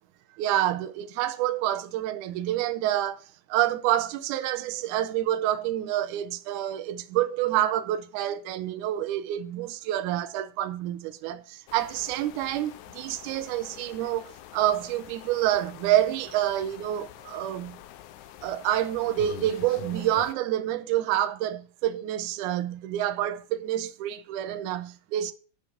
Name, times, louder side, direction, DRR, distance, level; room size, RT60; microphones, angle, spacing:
voice 1, 0.4-3.2 3.5-17.8 18.4-25.3, right 12 dB, 75° right, 2.0 m, -28 dB
sound 1, 11.7-20.3, left 14 dB, 80° left, 1.7 m, -46 dB
9.0 x 6.3 x 5.7 m
omnidirectional pair, 4.1 m